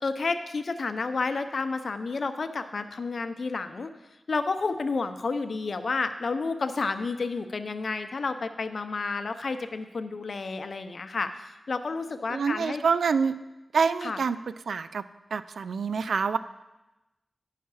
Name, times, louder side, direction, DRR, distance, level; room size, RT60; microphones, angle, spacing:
voice 1, 0.0-3.9 4.3-12.8 14.0-14.2, left 4 dB, 65° left, 9 dB, 0.6 m, -30 dB
voice 2, 12.3-13.4 13.7-14.4 14.7-15.0 15.3-16.4, right 5 dB, 90° right, 14 dB, 0.3 m, -26 dB
10.5 x 5.7 x 4.8 m, 1.0 s
wide cardioid pair, 65°, 0 cm